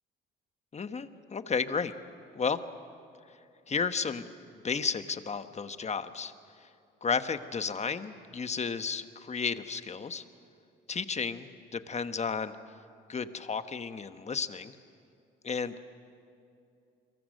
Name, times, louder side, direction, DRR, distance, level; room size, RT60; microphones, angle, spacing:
voice 1, 0.7-1.9 2.3-2.6 3.7-4.2 4.6-6.3 6.6-6.7 7.0-10.2 10.9-12.6 13.1-14.7 15.4-15.9, left 5 dB, 35° left, 10 dB, 1.2 m, -33 dB
29.5 x 23.0 x 6.5 m, 2.6 s
cardioid pair, 90°, 20 cm